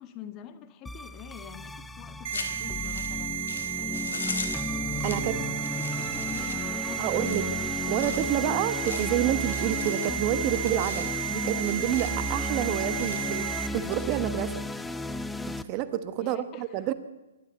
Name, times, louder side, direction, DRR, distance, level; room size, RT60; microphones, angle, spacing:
voice 1, 0.0-4.7 5.0-8.6 16.2-16.8, left 10 dB, 30° left, 9 dB, 1.8 m, -46 dB
sound 1, 0.9-15.6, left 1 dB, 5° left, 0.8 m, -34 dB
sound 2, 2.2-13.7, right 11 dB, 60° right, 1.3 m, -33 dB
sound 3, 2.3-14.7, left 5 dB, 75° left, 4.1 m, -41 dB
voice 2, 5.0-5.4 7.0-7.5 7.9-14.6 15.5-16.9, right 11 dB, 35° right, 12 dB, 1.4 m, -29 dB
26.0 x 12.5 x 8.3 m, 1.0 s
hypercardioid pair, 135°, 0 cm